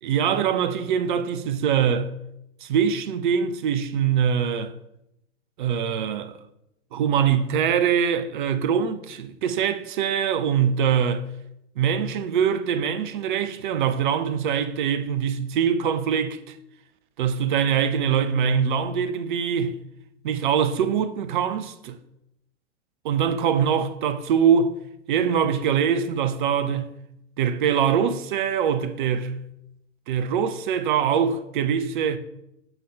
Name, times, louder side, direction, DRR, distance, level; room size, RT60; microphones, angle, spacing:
voice 1, 0.0-2.1 2.6-4.7 5.6-6.4 6.9-11.2 11.8-16.5 17.2-19.8 20.2-22.0 23.0-24.7 25.1-26.9 27.4-29.4 30.1-32.2, right 7 dB, 45° right, 0.6 m, -23 dB
7.9 x 3.8 x 4.9 m
figure-of-eight pair, 100°, 36 cm